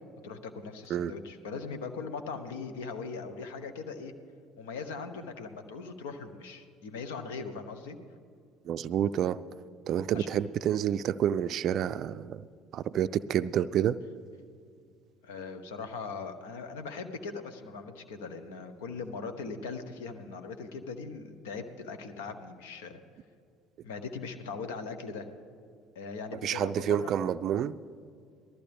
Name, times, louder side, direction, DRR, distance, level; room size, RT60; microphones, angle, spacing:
voice 1, 0.2-4.1 4.6-8.0 10.1-10.3 15.2-23.0 23.8-25.3 25.9-27.1, left 4 dB, 80° left, 8 dB, 0.9 m, -40 dB
voice 2, 8.7-9.4 9.9-12.5 12.7-14.0 26.4-27.8, right 10 dB, 55° right, 14 dB, 0.3 m, -29 dB
19.0 x 13.5 x 3.5 m, 2.2 s
hypercardioid pair, 60°, 0 cm